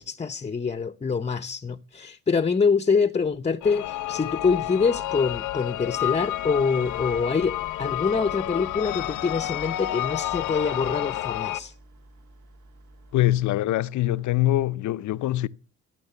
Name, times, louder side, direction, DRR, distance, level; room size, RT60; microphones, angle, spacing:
voice 1, 0.0-11.7, left 5 dB, 20° left, 0.7 m, -25 dB
sound 1, 3.6-11.6, left 13 dB, 90° left, 1.0 m, -30 dB
sound 2, 8.2-13.5, right 1 dB, 75° right, 3.2 m, -52 dB
voice 2, 13.1-15.5, left 15 dB, 75° left, 0.7 m, -23 dB
15.5 x 9.2 x 6.8 m
cardioid pair, 90°, 30 cm